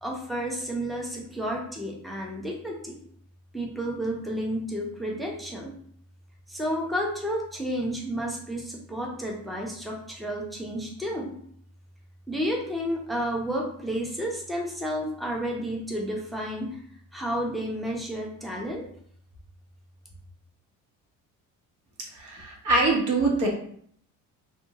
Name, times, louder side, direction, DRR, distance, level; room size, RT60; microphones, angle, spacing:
voice 1, 0.0-3.0 3.5-5.8 6.5-11.3 12.3-16.8 17.1-18.9, equal, ahead, -1 dB, 0.5 m, -31 dB
voice 2, 22.1-23.5, right 2 dB, 60° right, -1 dB, 1.1 m, -24 dB
2.7 x 2.3 x 2.8 m, 0.62 s
cardioid pair, 115°, 33 cm